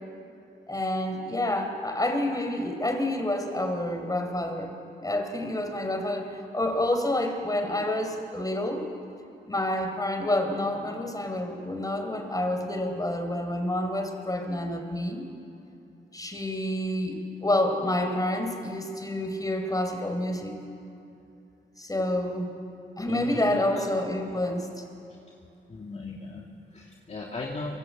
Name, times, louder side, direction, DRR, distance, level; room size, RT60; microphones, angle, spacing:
voice 1, 0.7-4.7 5.0-8.8 9.5-15.3 16.1-20.6 21.8-22.5 23.0-24.8, left 1 dB, 20° left, 4 dB, 4.3 m, -28 dB
voice 2, 23.1-23.9 25.3-25.4 25.7-27.8, left 3 dB, 35° left, -2 dB, 2.5 m, -37 dB
27.0 x 24.5 x 8.6 m, 2.7 s
wide cardioid pair, 105°, 19 cm